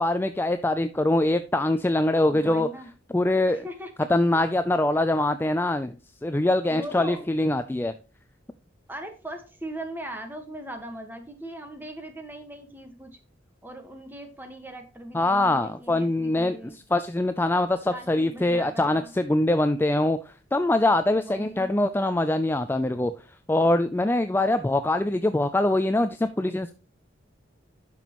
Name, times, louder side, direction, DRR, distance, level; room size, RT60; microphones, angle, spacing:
voice 1, 0.0-2.7 3.1-3.6 4.1-7.9 15.1-23.1 23.5-26.7, left 1 dB, 10° left, 0.3 m, -23 dB
voice 2, 2.3-2.9 3.5-3.9 4.3-4.5 6.7-7.2 8.9-13.2 13.6-16.8 17.9-19.1 21.2-21.7, right 1 dB, 10° right, 1.4 m, -39 dB
10.5 x 6.1 x 3.0 m
head